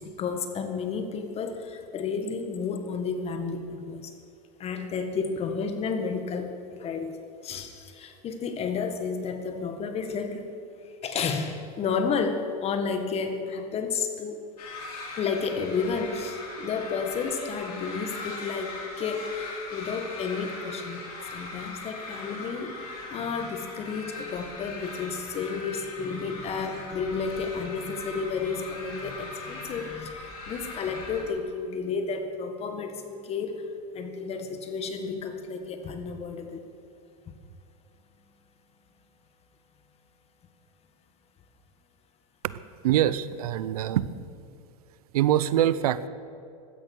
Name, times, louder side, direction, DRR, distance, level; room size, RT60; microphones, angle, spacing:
voice 1, 0.0-4.1 4.6-7.1 7.4-10.4 10.8-14.4 15.2-21.0 21.3-33.6 33.9-36.6, left 5 dB, 35° left, 7 dB, 1.8 m, -31 dB
sound 1, 14.6-31.2, left 3 dB, 90° left, 4.8 m, -40 dB
voice 2, 42.8-44.1 45.1-46.1, right 12 dB, 85° right, 16 dB, 0.7 m, -24 dB
16.0 x 12.5 x 6.4 m, 2.5 s
supercardioid pair, 125°, 19 cm